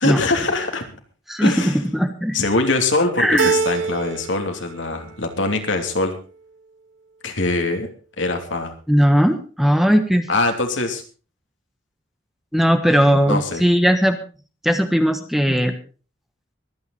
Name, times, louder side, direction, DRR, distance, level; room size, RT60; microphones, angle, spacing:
voice 1, 0.0-0.9 1.4-1.8 2.3-6.2 7.2-7.9 8.2-8.7 10.3-11.0 13.3-13.6, left 2 dB, 70° left, 4 dB, 2.9 m, -22 dB
voice 2, 1.3-2.4 3.2-3.5 8.9-10.3 12.5-14.2 14.6-15.7, equal, ahead, 7 dB, 1.3 m, -18 dB
Keyboard (musical), 3.4-4.5 4.8-5.5, right 5 dB, 70° right, 0.6 m, -24 dB
24.0 x 9.4 x 4.1 m, 0.37 s
head